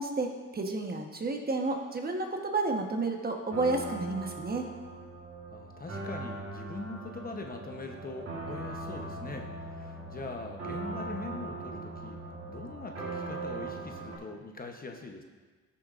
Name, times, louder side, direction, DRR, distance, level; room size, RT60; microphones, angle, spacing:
voice 1, 0.0-4.6, right 3 dB, 30° right, 2 dB, 1.2 m, -31 dB
sound 1, 3.5-14.2, right 3 dB, 50° right, 2.4 m, -40 dB
voice 2, 5.5-12.2 12.5-15.2, left 3 dB, 30° left, 3 dB, 0.9 m, -42 dB
13.5 x 7.0 x 2.5 m, 1.4 s
cardioid pair, 90°, 30 cm